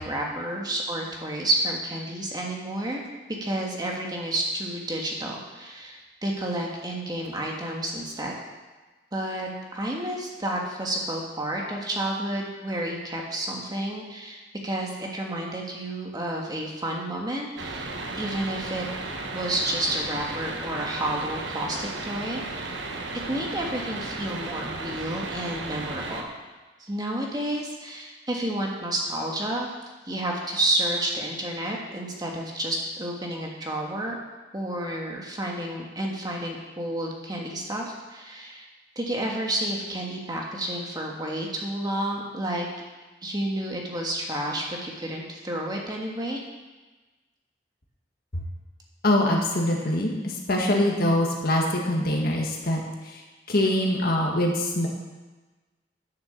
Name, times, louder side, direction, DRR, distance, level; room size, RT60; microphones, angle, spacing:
voice 1, 0.0-8.4 9.1-17.9 18.2-18.9 19.3-22.7 23.3-26.3 26.8-29.7 30.1-34.2 34.5-38.7 39.0-42.7 43.2-46.4, right 1 dB, 20° right, -1 dB, 1.7 m, -30 dB
sound 1, 17.6-26.2, right 3 dB, 90° right, 1.3 m, -34 dB
voice 2, 49.0-54.9, left 1 dB, 55° left, 0 dB, 1.8 m, -24 dB
10.5 x 6.8 x 7.0 m, 1.2 s
head